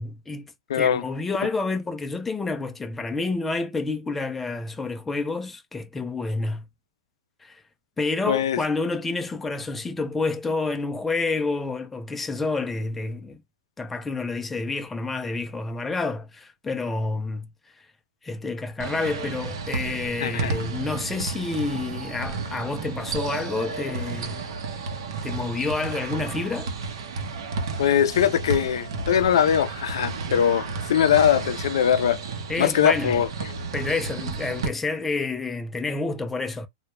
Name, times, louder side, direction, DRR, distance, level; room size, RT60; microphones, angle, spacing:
voice 1, 0.0-6.7 7.4-7.6 8.0-13.4 13.8-17.5 17.8-17.9 18.2-24.5 25.2-26.7 32.5-33.2 33.7-36.7, left 3 dB, 5° left, 0.3 m, -29 dB
voice 2, 0.7-1.0 8.3-8.6 20.2-20.6 27.8-32.2 32.6-33.3, left 9 dB, 85° left, 0.3 m, -21 dB
sound 1, 18.8-34.7, right 4 dB, 85° right, 0.6 m, -32 dB
2.1 x 2.1 x 2.9 m
supercardioid pair, 170°, 2 cm